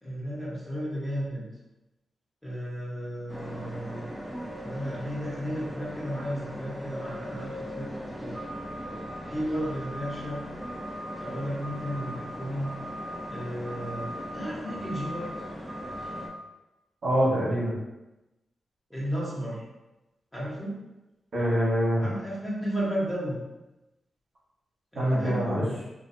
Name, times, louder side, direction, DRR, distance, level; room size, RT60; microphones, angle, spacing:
voice 1, 0.0-1.5 2.4-8.4 9.3-10.4 11.2-12.7 13.3-15.3 18.9-19.6 20.3-20.8 22.0-23.4 24.9-25.8, equal, 10° left, -7 dB, 1.4 m, -34 dB
sound 1, 3.3-16.3, equal, 15° right, 1.0 m, -38 dB
voice 2, 17.0-17.8 21.3-22.0 24.9-25.6, equal, 70° right, -9 dB, 1.4 m, -25 dB
2.6 x 2.4 x 2.7 m, 0.99 s
cardioid pair, 50°, 0 cm